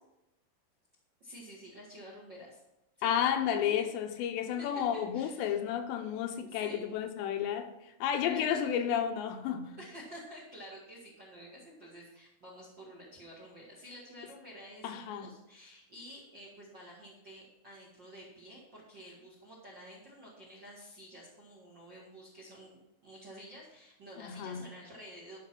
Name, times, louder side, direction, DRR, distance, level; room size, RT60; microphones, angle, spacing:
voice 1, 1.2-2.6 3.0-3.1 4.1-4.7 4.9-5.5 6.4-7.0 8.3-8.8 9.8-25.4, equal, 45° right, 1.5 m, -50 dB
voice 2, 3.0-9.8 14.8-15.3 24.2-24.7, left 9 dB, 80° left, 3.0 m, -32 dB
11.5 x 5.5 x 5.9 m
omnidirectional pair, 5.1 m